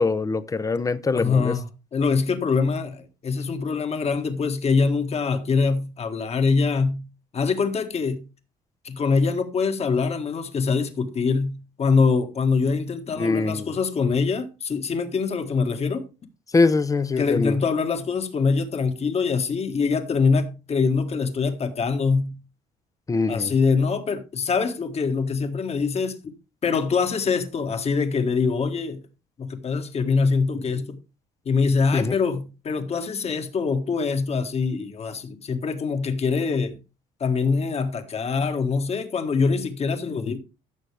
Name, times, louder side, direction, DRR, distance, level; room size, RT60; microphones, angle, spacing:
voice 1, 0.0-1.6 13.2-13.7 16.5-17.6 23.1-23.5 31.9-32.1, left 3 dB, 20° left, 0.7 m, -23 dB
voice 2, 1.1-1.6 1.9-7.1 7.3-8.2 8.8-16.1 17.2-22.4 23.3-26.2 26.6-29.0 29.4-31.0 31.4-36.8 37.2-40.4, left 4 dB, 40° left, 1.6 m, -24 dB
14.5 x 6.3 x 3.4 m
cardioid pair, 110°, 17 cm